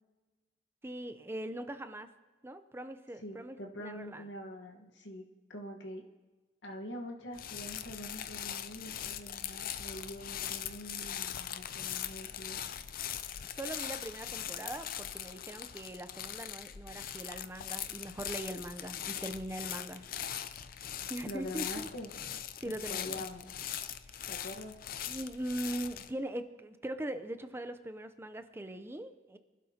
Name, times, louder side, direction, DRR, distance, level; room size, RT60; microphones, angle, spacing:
voice 1, 0.8-2.1 2.4-4.3 13.5-20.0 21.1-21.9 22.6-23.3 24.1-24.3 25.1-29.4, right 1 dB, 15° right, 10 dB, 0.6 m, -41 dB
voice 2, 3.2-5.2 5.5-6.0 6.6-12.6 21.2-22.1 22.6-23.5 24.3-24.8, left 1 dB, 90° left, 2 dB, 1.3 m, -44 dB
sound 1, 7.3-26.1, left 10 dB, 55° left, 0.5 m, -41 dB
23.5 x 12.0 x 2.8 m, 1.2 s
head